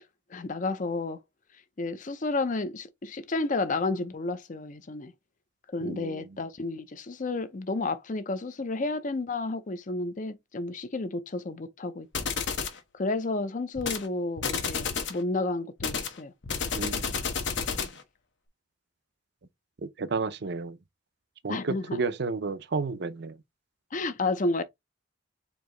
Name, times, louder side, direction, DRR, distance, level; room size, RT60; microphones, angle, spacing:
voice 1, 0.3-1.2 1.8-5.1 5.7-12.1 12.9-16.3 21.5-22.0 23.9-24.6, left 3 dB, 40° left, 0.6 m, -31 dB
voice 2, 5.8-6.4 16.7-17.2 17.8-17.9 19.8-20.8 21.4-23.4, right 4 dB, 60° right, 0.6 m, -32 dB
sound 1, 12.1-12.8 13.8-14.1 14.4-15.2 15.8-18.0, left 5 dB, 65° left, 0.9 m, -31 dB
4.6 x 2.7 x 3.8 m
head